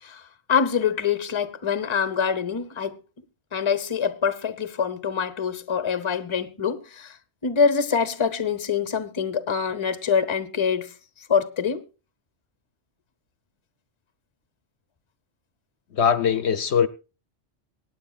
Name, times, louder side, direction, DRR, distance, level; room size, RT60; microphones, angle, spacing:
voice 1, 0.0-3.0 3.5-7.2 7.4-11.8, left 6 dB, 25° left, 0.9 m, -25 dB
voice 2, 15.9-16.9, left 7 dB, 65° left, 0.9 m, -21 dB
24.0 x 9.4 x 2.3 m
omnidirectional pair, 1.3 m